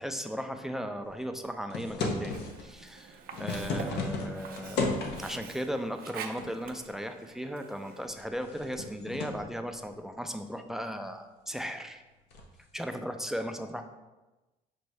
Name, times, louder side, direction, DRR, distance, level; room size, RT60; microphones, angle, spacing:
voice 1, 0.0-12.0 12.7-13.8, equal, ahead, 7 dB, 0.3 m, -37 dB
sound 1, 1.7-2.7 3.1-5.4 6.4-6.9 7.3-7.4 8.0-9.4 12.3-12.6, left 3 dB, 80° left, 0.7 m, -34 dB
Sink (filling or washing), 2.2-8.2, right 6 dB, 60° right, 0.5 m, -46 dB
6.2 x 2.6 x 3.2 m, 1.1 s
cardioid pair, 110°, 17 cm